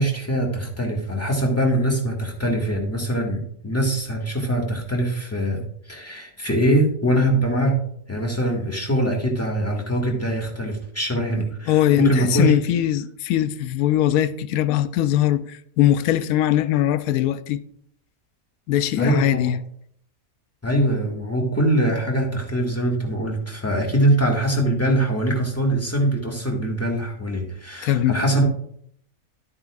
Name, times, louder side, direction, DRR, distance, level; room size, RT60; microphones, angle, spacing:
voice 1, 0.0-7.8 8.1-12.6 19.0-19.5 20.6-28.4, right 1 dB, 10° left, 1.7 m, -23 dB
voice 2, 11.7-17.6 18.7-19.6 27.8-28.2, left 12 dB, 80° left, 1.0 m, -21 dB
12.5 x 8.7 x 2.4 m
omnidirectional pair, 1.5 m